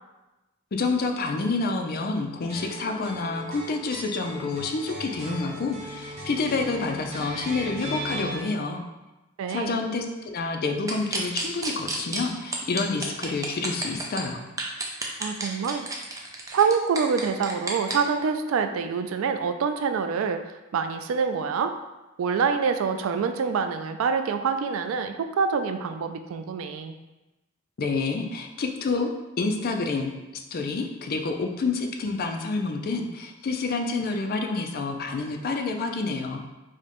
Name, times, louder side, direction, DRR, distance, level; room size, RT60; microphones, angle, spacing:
voice 1, 0.7-8.8 9.5-14.4 27.8-29.1 29.4-30.1 30.5-36.4, left 3 dB, 50° left, 4 dB, 0.4 m, -28 dB
sound 1, 2.5-8.3, equal, 35° right, 0.8 m, -37 dB
voice 2, 9.4-9.8 15.2-15.9 16.5-21.7 22.2-27.0, right 5 dB, 85° right, 7 dB, 0.3 m, -26 dB
sound 2, 10.9-12.2 12.5-14.2 14.6-17.9, right 3 dB, 15° right, 0.4 m, -30 dB
4.8 x 2.1 x 2.9 m, 1.0 s
head